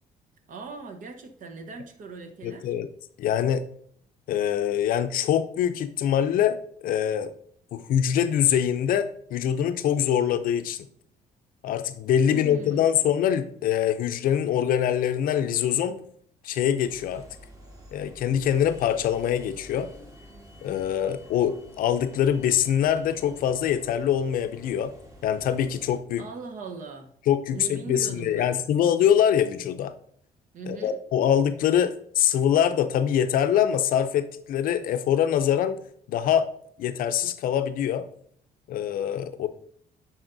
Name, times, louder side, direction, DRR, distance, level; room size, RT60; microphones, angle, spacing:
voice 1, 0.5-2.7 12.3-13.0 26.2-27.1 27.5-28.6 30.5-31.0, right 3 dB, 60° right, 6 dB, 1.0 m, -39 dB
voice 2, 2.4-2.9 3.2-3.6 4.3-6.6 6.8-7.3 7.7-10.9 11.6-16.0 16.4-17.2 17.9-19.9 20.6-24.9 25.2-26.2 27.3-29.9 30.7-35.8 36.1-36.5 36.8-38.1 38.7-39.5, left 9 dB, 65° left, 11 dB, 0.5 m, -24 dB
sound 1, 16.8-26.0, equal, 20° right, 1.5 m, -49 dB
10.0 x 4.2 x 2.6 m, 0.63 s
cardioid pair, 90°, 15 cm